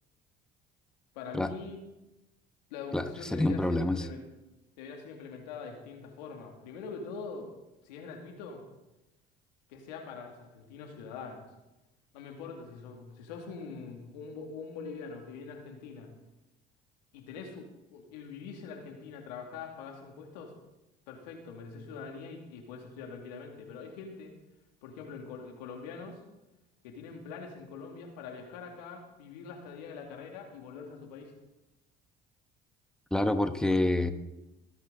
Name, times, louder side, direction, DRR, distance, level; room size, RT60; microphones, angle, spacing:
voice 1, 1.1-1.8 2.7-4.3 4.8-7.5 7.8-8.6 9.7-11.4 12.1-16.1 17.1-20.5 21.1-24.3 24.8-26.2 26.8-31.3 33.6-33.8, left 5 dB, 85° left, 2 dB, 2.4 m, -43 dB
voice 2, 2.9-4.1 33.1-34.1, left 1 dB, 5° left, 9 dB, 1.2 m, -27 dB
22.0 x 9.5 x 3.9 m, 0.98 s
hypercardioid pair, 70°, 21 cm